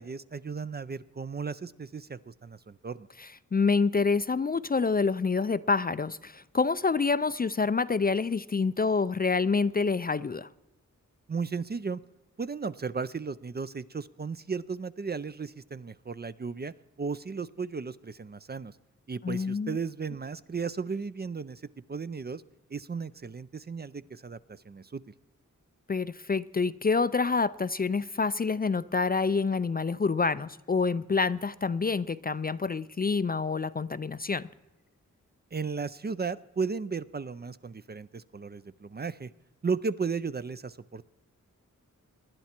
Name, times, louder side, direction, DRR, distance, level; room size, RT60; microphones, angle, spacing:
voice 1, 0.0-3.1 11.3-12.0 12.4-16.7 17.0-18.7 19.1-21.6 21.9-22.4 22.7-25.0 35.5-39.3 39.6-41.1, right 5 dB, 30° right, 0.5 m, -35 dB
voice 2, 3.2-10.5 19.2-19.8 25.9-34.5, left 4 dB, 30° left, 0.4 m, -27 dB
19.5 x 11.0 x 4.4 m
cardioid pair, 60°, 31 cm